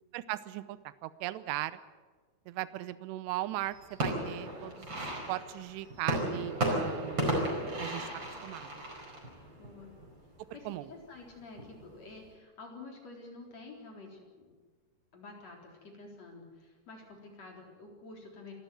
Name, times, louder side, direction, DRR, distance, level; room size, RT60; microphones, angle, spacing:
voice 1, 0.1-1.7 2.5-5.0 5.3-7.3 7.8-8.1 8.4-8.8 10.7-10.9, right 16 dB, 80° right, 15 dB, 2.9 m, -38 dB
sound 1, 3.6-10.2 10.6-11.2 11.6-12.2, right 1 dB, 25° right, 5.2 m, -35 dB
voice 2, 9.6-9.9 10.5-14.5 15.1-18.5, left 3 dB, 40° left, 1 dB, 4.8 m, -49 dB
27.0 x 13.0 x 9.1 m, 1.4 s
omnidirectional pair, 4.9 m